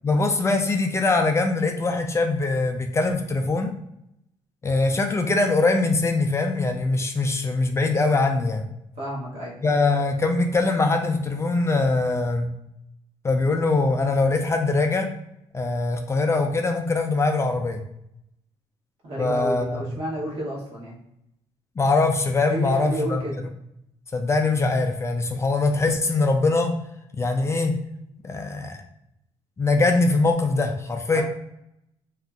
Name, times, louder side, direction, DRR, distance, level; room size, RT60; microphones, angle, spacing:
voice 1, 0.0-3.7 4.6-8.6 9.6-12.5 13.2-15.1 15.5-17.8 19.2-19.8 21.8-23.2 24.1-26.7 27.2-27.7 28.2-28.8 29.6-31.2, left 3 dB, 25° left, 4 dB, 0.3 m, -22 dB
voice 2, 9.0-9.6 19.0-21.0 22.5-23.4 31.1-31.2, right 1 dB, 65° right, -5 dB, 1.3 m, -31 dB
2.7 x 2.4 x 2.3 m, 0.80 s
cardioid pair, 100°, 11 cm